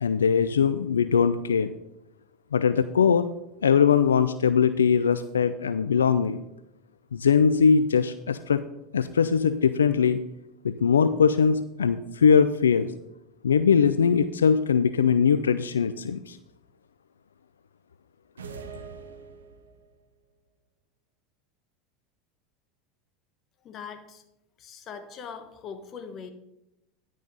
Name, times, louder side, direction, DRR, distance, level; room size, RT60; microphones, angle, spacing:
voice 1, 0.0-1.7 2.5-3.3 3.6-6.4 7.1-8.6 8.9-10.2 10.6-12.9 13.4-16.4, left 6 dB, 85° left, 12 dB, 0.3 m, -21 dB
sound 1, 18.4-19.9, right 5 dB, 90° right, 1.0 m, -42 dB
voice 2, 23.6-24.2 24.6-26.3, left 6 dB, 40° left, 8 dB, 1.4 m, -41 dB
10.5 x 6.3 x 5.4 m, 0.89 s
hypercardioid pair, 85°, 0 cm